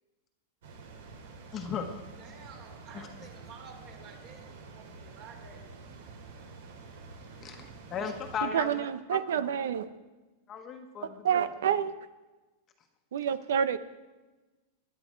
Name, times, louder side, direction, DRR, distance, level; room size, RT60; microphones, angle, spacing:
sound 1, 0.6-8.4, right 4 dB, 70° right, 3.1 m, -48 dB
voice 1, 1.5-1.9 2.9-3.1 7.4-9.2 10.5-11.5, left 6 dB, 20° left, 4 dB, 1.3 m, -37 dB
voice 2, 2.2-5.7, right 5 dB, 40° right, 2 dB, 3.3 m, -51 dB
voice 3, 8.4-9.9 11.0-11.9 13.1-13.8, right 8 dB, 85° right, 14 dB, 1.0 m, -28 dB
20.5 x 11.0 x 4.7 m, 1.2 s
supercardioid pair, 165°, 0 cm